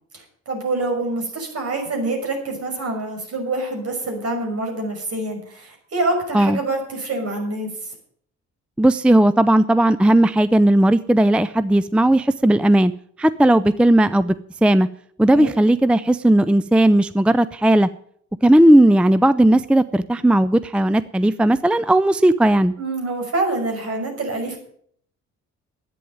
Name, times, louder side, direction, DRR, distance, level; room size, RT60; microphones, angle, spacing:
voice 1, 0.5-7.7 15.3-15.5 22.8-24.6, right 2 dB, 55° right, 2 dB, 6.1 m, -26 dB
voice 2, 8.8-12.9 13.2-14.3 14.6-14.9 15.2-17.9 18.4-22.7, right 1 dB, 5° right, 15 dB, 0.4 m, -16 dB
11.0 x 9.3 x 8.8 m, 0.64 s
cardioid pair, 90°, 30 cm